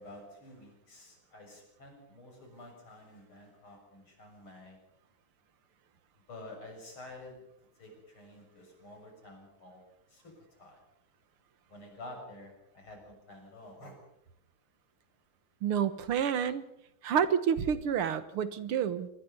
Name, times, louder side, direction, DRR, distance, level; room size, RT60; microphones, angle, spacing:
voice 1, 0.0-4.8 6.3-7.4 7.8-10.8 11.7-14.0, left 1 dB, 75° left, 2 dB, 7.6 m, -50 dB
voice 2, 15.6-16.6 17.0-19.1, right 8 dB, 85° right, 13 dB, 2.2 m, -29 dB
26.0 x 20.0 x 5.5 m, 0.78 s
omnidirectional pair, 2.3 m